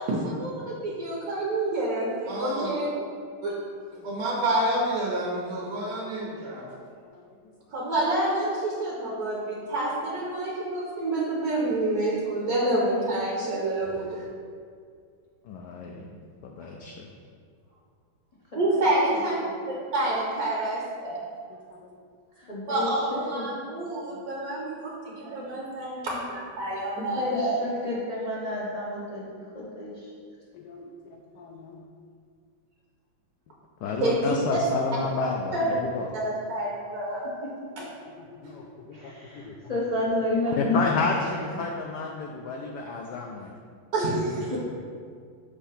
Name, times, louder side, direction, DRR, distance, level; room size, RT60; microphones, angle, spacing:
voice 1, 0.0-2.9 3.4-3.6 7.7-14.2 18.5-19.3 19.9-21.2 22.7-27.6 34.0-34.3 35.5-35.7 36.1-37.3 37.8-37.9 43.9-44.6, right 1 dB, 55° right, -4 dB, 1.2 m, -28 dB
voice 2, 2.3-2.7 4.0-6.6, right 1 dB, 85° right, -5 dB, 1.7 m, -28 dB
voice 3, 15.5-16.1 16.4-17.1 21.7-21.8 30.5-31.8 33.8-36.1 37.8-39.5 40.6-43.5, left 4 dB, 75° left, 1 dB, 0.9 m, -31 dB
voice 4, 18.5-18.8 22.4-22.9 23.3-23.4 24.1-24.2 25.2-25.5 27.0-30.1 37.6-37.7 38.9-41.6 44.5-44.6, left 2 dB, 55° left, -8 dB, 0.4 m, -31 dB
6.6 x 2.8 x 5.6 m, 2.1 s
omnidirectional pair, 2.2 m